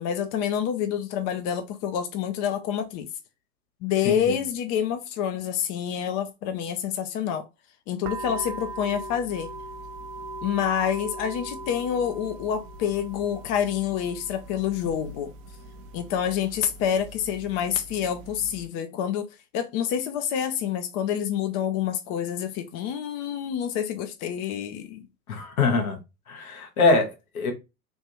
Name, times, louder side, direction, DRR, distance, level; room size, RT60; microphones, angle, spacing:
voice 1, 0.0-3.1 3.8-7.4 7.9-9.5 10.4-15.3 15.9-19.3 19.5-25.1, left 9 dB, 35° left, 0.5 m, -27 dB
voice 2, 4.0-4.3 25.3-26.0 26.3-27.5, left 3 dB, 70° left, 1.3 m, -23 dB
sound 1, 8.0-18.7, right 2 dB, 50° right, 0.7 m, -40 dB
3.5 x 2.5 x 2.9 m
figure-of-eight pair, 90°, 44 cm